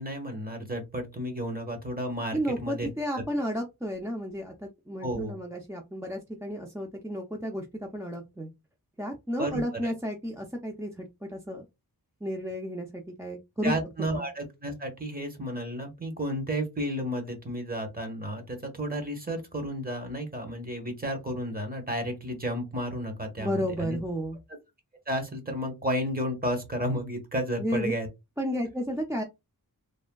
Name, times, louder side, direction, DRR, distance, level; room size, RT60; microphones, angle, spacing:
voice 1, 0.0-2.9 3.1-3.2 5.0-5.4 9.4-9.9 13.6-24.0 25.1-28.1, equal, 25° right, 1.0 m, -32 dB
voice 2, 2.3-8.5 9.0-11.6 12.2-13.7 14.2-14.3 23.4-24.4 27.6-27.9 28.4-29.2, equal, 10° right, 0.4 m, -32 dB
3.3 x 2.1 x 2.2 m
wide cardioid pair, 70°, 38 cm